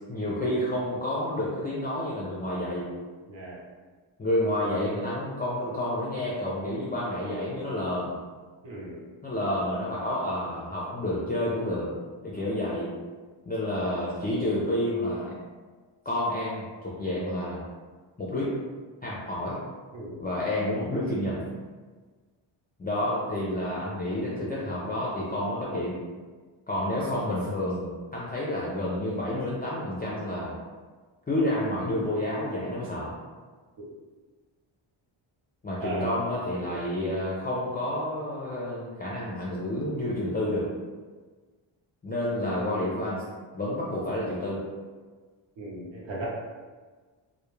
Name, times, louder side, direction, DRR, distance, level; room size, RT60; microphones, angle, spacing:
voice 1, 0.1-2.9 4.2-8.2 9.2-11.9 12.2-12.9 13.5-15.3 16.1-17.6 18.2-18.6 19.0-19.6 20.2-21.5 22.8-26.0 26.7-30.5 31.3-33.1 35.6-40.7 42.0-43.2 43.5-44.6, left 1 dB, 20° left, -7 dB, 0.3 m, -29 dB
voice 2, 3.3-3.6 8.6-9.0 19.9-20.2 33.8-33.9 35.8-36.2 45.6-46.3, right 2 dB, 65° right, -5 dB, 0.8 m, -36 dB
2.2 x 2.1 x 3.0 m, 1.4 s
cardioid pair, 105°, 49 cm